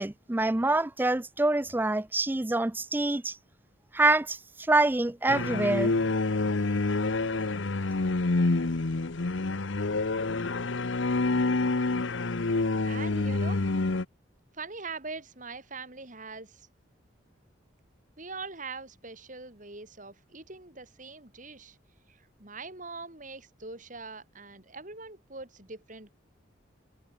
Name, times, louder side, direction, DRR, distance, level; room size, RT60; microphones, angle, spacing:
voice 1, 0.0-3.4 3.9-4.4 4.7-5.9, right 2 dB, 10° right, 0.4 m, -26 dB
sound 1, 5.3-14.0, left 3 dB, 75° left, 0.9 m, -27 dB
voice 2, 12.9-13.6 14.5-16.7 18.2-21.8 22.1-26.1, right 4 dB, 40° right, 4.1 m, -42 dB
head